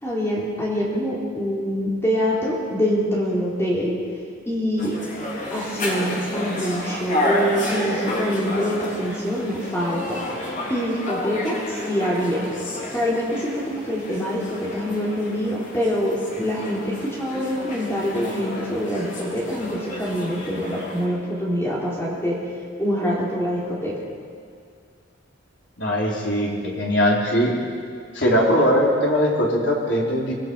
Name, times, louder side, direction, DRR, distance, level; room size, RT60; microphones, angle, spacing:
voice 1, 0.0-3.9 4.5-5.0 5.5-10.2 10.7-12.5 12.9-22.4 22.8-24.0, equal, 15° left, -5 dB, 3.8 m, -25 dB
sound 1, 4.8-21.1, left 1 dB, 40° left, 3.5 m, -31 dB
voice 2, 25.8-27.5 28.1-30.3, equal, 60° left, -3 dB, 4.7 m, -20 dB
26.0 x 19.0 x 5.8 m, 2.2 s
head